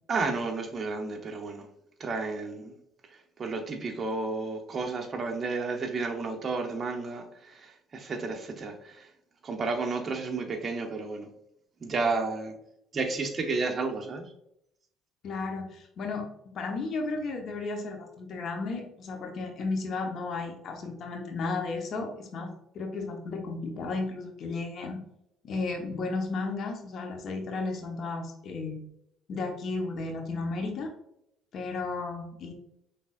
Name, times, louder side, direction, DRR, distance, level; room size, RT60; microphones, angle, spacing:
voice 1, 0.1-1.7 2.0-2.8 3.1-9.1 9.4-11.3 11.8-12.5 12.9-14.2, right 3 dB, 40° right, 0.9 m, -32 dB
voice 2, 15.2-16.3 16.5-22.5 22.7-25.0 25.4-28.8 29.3-30.9 31.5-32.5, left 3 dB, 55° left, 1.1 m, -34 dB
5.9 x 3.5 x 2.5 m
supercardioid pair, 90°, 0 cm